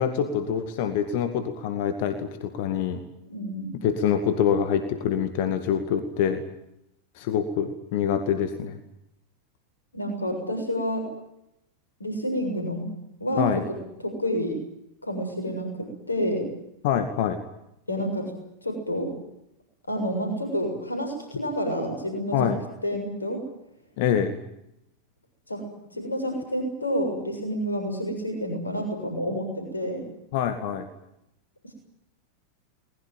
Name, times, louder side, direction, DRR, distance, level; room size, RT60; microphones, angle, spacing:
voice 1, 0.0-3.0 3.8-6.4 7.2-8.8 13.4-13.6 16.8-17.4 22.3-22.6 24.0-24.4 30.3-30.9, left 8 dB, 50° left, 8 dB, 2.2 m, -25 dB
voice 2, 3.3-3.8 9.9-11.0 12.0-12.8 13.2-13.4 14.0-14.6 15.0-15.7 16.1-16.5 17.9-18.3 18.6-19.1 19.9-22.5 22.8-23.4 25.5-25.6 25.9-30.1, equal, 80° left, 5 dB, 6.9 m, -29 dB
23.0 x 21.0 x 9.1 m, 0.81 s
figure-of-eight pair, 90°, 0 cm